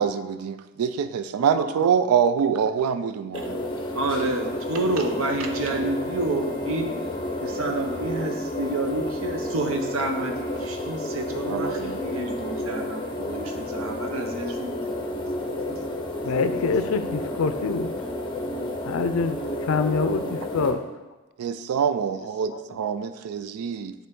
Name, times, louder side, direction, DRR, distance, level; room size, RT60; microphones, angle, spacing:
voice 1, 0.0-3.6 11.5-12.0 21.4-23.9, right 7 dB, 85° right, 11 dB, 0.3 m, -25 dB
sound 1, 3.3-20.7, left 1 dB, 20° left, 0.6 m, -31 dB
voice 2, 3.9-6.9 7.4-15.0 15.4-15.8 19.9-20.1, right 2 dB, 70° right, 3 dB, 0.8 m, -29 dB
Wind instrument woodwind instrument, 4.2-14.8, equal, ahead, 1.4 m, -46 dB
voice 3, 16.2-18.1 18.8-20.9 22.2-22.8, left 4 dB, 75° left, 10 dB, 0.4 m, -26 dB
9.2 x 3.5 x 3.7 m, 1.1 s
head